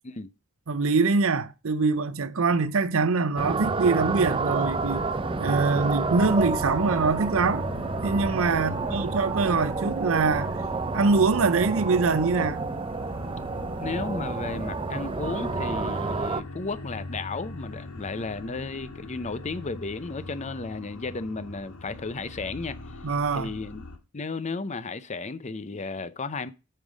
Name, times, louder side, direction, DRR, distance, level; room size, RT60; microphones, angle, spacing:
voice 1, 0.7-5.0 5.4-7.7 8.0-10.6 10.9-12.6 23.0-23.5, right 4 dB, 65° right, 0.6 m, -24 dB
sound 1, 3.4-16.4, right 3 dB, 25° right, 0.5 m, -29 dB
sound 2, 4.8-24.0, left 2 dB, 85° left, 1.8 m, -41 dB
voice 2, 8.5-9.1 13.8-23.0 23.3-23.8 24.1-26.5, left 3 dB, 30° left, 0.6 m, -34 dB
8.3 x 5.6 x 5.1 m
head